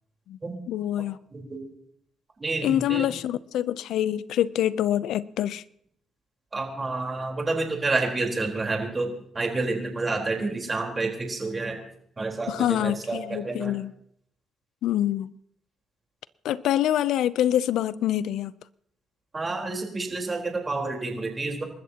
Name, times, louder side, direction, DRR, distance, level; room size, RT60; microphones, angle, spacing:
voice 1, 0.7-1.2 2.6-5.6 12.5-13.9 14.8-15.3 16.4-18.5, left 12 dB, 80° left, 0.5 m, -25 dB
voice 2, 1.3-1.7 2.4-3.1 6.5-11.8 12.2-13.8 19.3-21.6, right 3 dB, 25° right, 4.1 m, -29 dB
28.5 x 13.5 x 2.9 m
cardioid pair, 90°, 0 cm